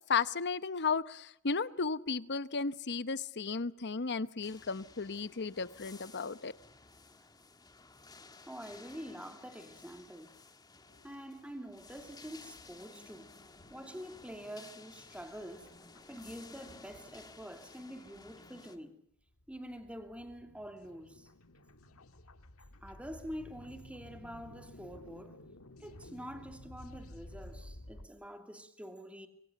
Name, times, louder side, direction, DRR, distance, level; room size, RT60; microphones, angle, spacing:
voice 1, 0.1-6.5, left 5 dB, 50° left, 1.0 m, -34 dB
sound 1, 4.4-18.8, left 3 dB, 20° left, 1.6 m, -55 dB
voice 2, 8.5-10.4 11.0-13.4 13.7-15.7 16.1-19.0 19.5-21.3 22.8-25.4 25.8-29.3, equal, 5° right, 2.7 m, -46 dB
sound 2, 10.9-11.2 11.7-12.9 13.1-13.2 13.5-18.3 18.8-18.9 19.3-28.1, left 1 dB, 70° left, 1.8 m, -54 dB
26.0 x 23.0 x 6.8 m
head